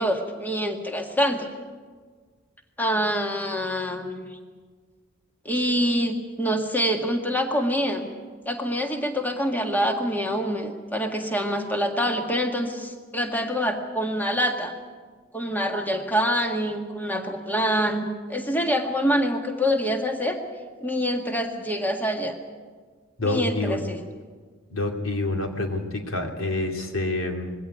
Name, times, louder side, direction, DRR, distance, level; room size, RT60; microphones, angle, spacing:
voice 1, 0.0-1.5 2.8-4.3 5.5-8.1 8.5-14.7 15.3-20.4 20.8-22.3 23.2-24.0, equal, 10° left, 3 dB, 1.8 m, -25 dB
voice 2, 23.2-23.8 24.7-27.6, left 2 dB, 90° left, 3 dB, 2.8 m, -27 dB
21.5 x 16.5 x 9.4 m, 1.5 s
head